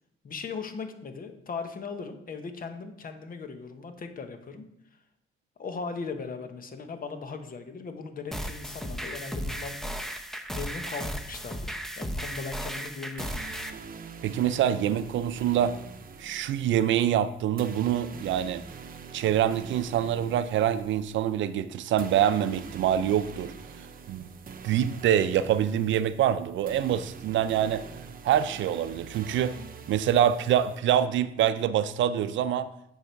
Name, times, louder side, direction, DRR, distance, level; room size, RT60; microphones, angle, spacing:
voice 1, 0.2-4.7 5.6-10.2 10.5-13.3, left 4 dB, 45° left, 8 dB, 1.1 m, -38 dB
sound 1, 8.3-13.7, equal, ahead, 0.8 m, -35 dB
sound 2, 13.2-30.8, right 5 dB, 45° right, 0.8 m, -45 dB
voice 2, 14.2-15.8 16.2-18.6 19.1-23.5 24.1-24.3 24.6-27.8 28.2-29.6 29.9-32.7, right 10 dB, 75° right, 13 dB, 0.5 m, -25 dB
9.6 x 4.9 x 4.6 m, 0.79 s
cardioid pair, 90°, 20 cm